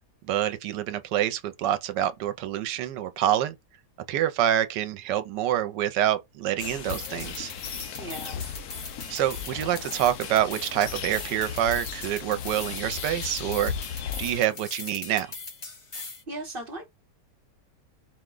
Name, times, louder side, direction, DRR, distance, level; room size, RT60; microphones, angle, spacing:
voice 1, 0.3-3.5 4.1-7.5 9.1-13.7 14.2-15.3, right 11 dB, 80° right, 1.2 m, -26 dB
sound 1, 6.6-14.4, left 8 dB, 70° left, 1.0 m, -36 dB
sound 2, 6.6-16.2, left 3 dB, 40° left, 0.4 m, -41 dB
voice 2, 8.0-8.4 16.3-16.9, right 1 dB, 40° right, 0.8 m, -37 dB
4.7 x 2.1 x 3.7 m
omnidirectional pair, 1.9 m